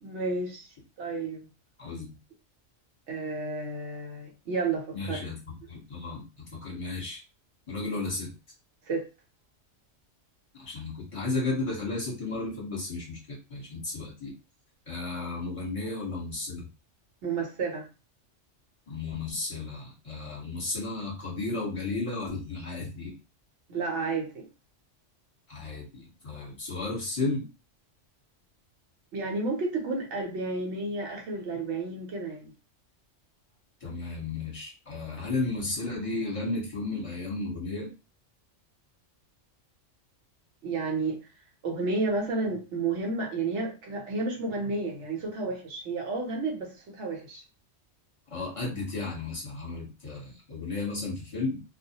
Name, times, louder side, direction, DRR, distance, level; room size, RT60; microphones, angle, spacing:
voice 1, 0.0-0.7 1.0-1.5 3.1-5.2 8.9-9.1 17.2-17.9 23.7-24.5 29.1-32.5 40.6-41.2 41.6-47.4, right 3 dB, 70° right, 1 dB, 1.0 m, -31 dB
voice 2, 4.9-6.2 6.5-7.2 7.7-8.3 10.5-14.3 14.9-16.6 18.9-23.1 25.5-27.4 33.8-37.9 48.3-51.6, left 3 dB, 30° left, -4 dB, 1.0 m, -33 dB
2.3 x 2.0 x 2.7 m, 0.30 s
omnidirectional pair, 1.3 m